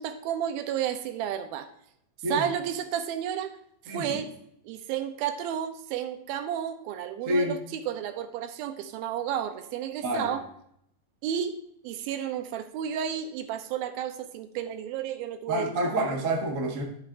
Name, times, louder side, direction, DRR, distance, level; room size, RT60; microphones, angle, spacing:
voice 1, 0.0-1.7 2.3-3.6 3.8-4.3 4.6-10.4 11.2-11.5 11.8-15.7, right 9 dB, 85° right, 8 dB, 2.5 m, -32 dB
voice 2, 3.9-4.2 7.3-7.6 10.0-10.3 15.5-16.8, right 1 dB, 60° right, 0 dB, 0.8 m, -28 dB
11.0 x 7.9 x 2.6 m, 0.70 s
omnidirectional pair, 4.3 m